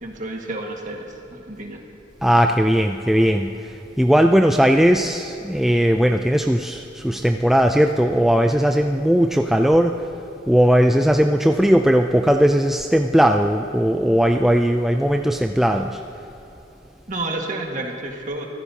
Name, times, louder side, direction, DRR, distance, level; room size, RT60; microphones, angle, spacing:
voice 1, 0.0-1.8 17.1-18.4, right 2 dB, 40° right, 0 dB, 1.7 m, -30 dB
voice 2, 2.2-3.5 4.0-10.0 10.5-16.0, equal, ahead, 4 dB, 0.3 m, -18 dB
25.0 x 14.5 x 2.8 m, 2.8 s
head